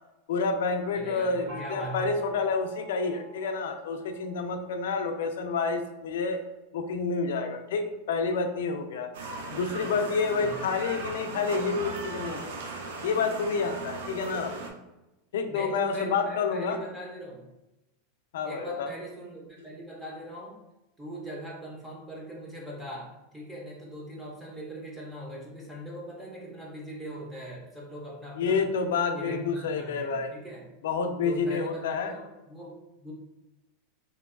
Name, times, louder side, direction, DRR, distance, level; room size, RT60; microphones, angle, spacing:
voice 1, 0.3-6.4 6.7-9.1 9.5-12.5 13.0-14.5 15.3-16.8 18.3-18.9 28.4-30.3 30.8-32.1, left 4 dB, 80° left, 6 dB, 0.3 m, -29 dB
voice 2, 0.9-2.1 10.3-10.6 15.5-17.5 18.4-20.6 21.0-28.6 29.2-30.7 31.2-33.1, right 1 dB, 5° right, -4 dB, 0.3 m, -41 dB
Gong, 1.5-5.0, right 2 dB, 55° right, 1.3 m, -47 dB
sound 1, 9.1-14.7, right 3 dB, 80° right, 0.4 m, -38 dB
2.8 x 2.2 x 2.3 m, 0.97 s
supercardioid pair, 180°, 0 cm